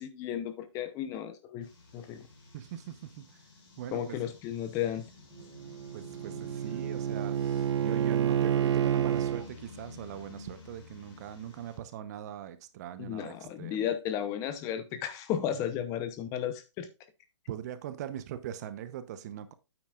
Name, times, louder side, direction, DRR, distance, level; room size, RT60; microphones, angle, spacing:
voice 1, 0.0-1.7 1.9-2.3 3.9-5.0 13.0-16.9, left 10 dB, 20° left, 0.8 m, -34 dB
sound 1, 1.6-11.8, left 3 dB, 50° left, 4.3 m, -51 dB
voice 2, 2.5-3.3 3.8-4.2 5.9-13.9 17.5-19.5, right 11 dB, 35° right, 0.8 m, -41 dB
Bowed string instrument, 5.4-9.5, right 9 dB, 65° right, 0.8 m, -29 dB
8.9 x 8.7 x 2.4 m
hypercardioid pair, 145°, 16 cm